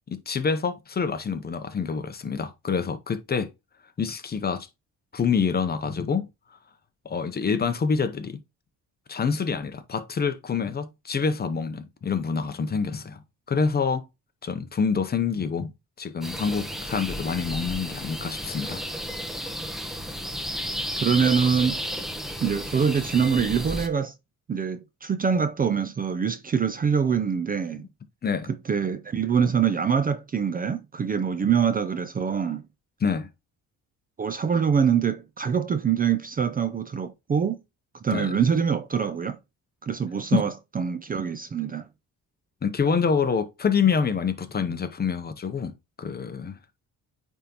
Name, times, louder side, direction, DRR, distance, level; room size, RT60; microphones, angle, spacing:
voice 1, 0.1-3.5 4.0-4.7 5.1-6.3 7.0-8.4 9.1-13.2 13.5-14.0 14.4-15.7 16.0-18.8 28.2-28.5 33.0-33.3 38.1-38.3 40.3-40.4 42.6-45.7 46.0-46.6, left 5 dB, 30° left, 0.7 m, -26 dB
sound 1, 16.2-23.9, equal, ahead, 0.8 m, -33 dB
voice 2, 21.0-21.8 22.4-24.1 24.5-27.8 28.5-32.6 34.2-37.6 38.0-39.4 39.8-41.9, right 7 dB, 25° right, 0.4 m, -24 dB
9.0 x 3.6 x 2.9 m
cardioid pair, 120°, 33 cm